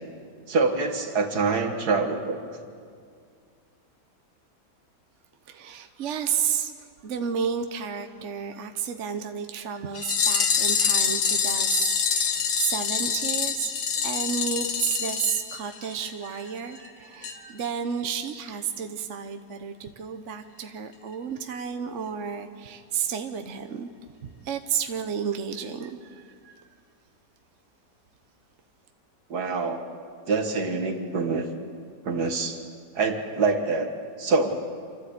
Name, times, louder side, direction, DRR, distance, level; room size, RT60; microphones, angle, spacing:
voice 1, 0.5-2.4 29.3-29.8 30.3-31.5 32.0-32.6 32.9-33.9 34.2-34.6, right 4 dB, 65° right, 5 dB, 2.1 m, -25 dB
voice 2, 5.5-6.7 7.0-13.7 14.0-23.9 24.4-26.5, right 7 dB, 50° right, 7 dB, 1.1 m, -31 dB
sound 1, 9.9-16.1 16.4-16.5 16.7-16.8 17.2-17.3 17.6-17.7, left 6 dB, 65° left, 1.7 m, -26 dB
28.5 x 13.0 x 8.4 m, 2.3 s
omnidirectional pair, 1.8 m